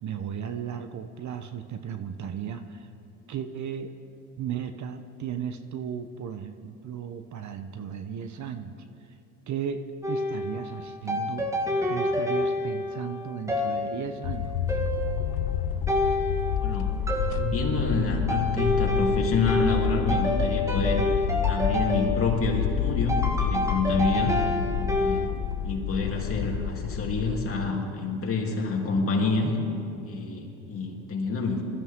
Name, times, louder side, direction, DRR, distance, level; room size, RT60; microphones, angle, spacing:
voice 1, 0.0-2.9 3.3-3.9 4.4-9.2 9.5-14.8, right 8 dB, 45° right, 9 dB, 0.9 m, -35 dB
sound 1, 10.0-25.3, left 1 dB, 10° right, 1.7 m, -29 dB
sound 2, 14.2-27.4, left 8 dB, 85° left, 0.8 m, -29 dB
voice 2, 17.4-21.0 21.5-24.3 24.9-25.4 25.6-29.5 30.0-31.6, left 3 dB, 35° left, -1 dB, 3.0 m, -28 dB
21.5 x 14.0 x 3.7 m, 2.6 s
supercardioid pair, 95°, 39 cm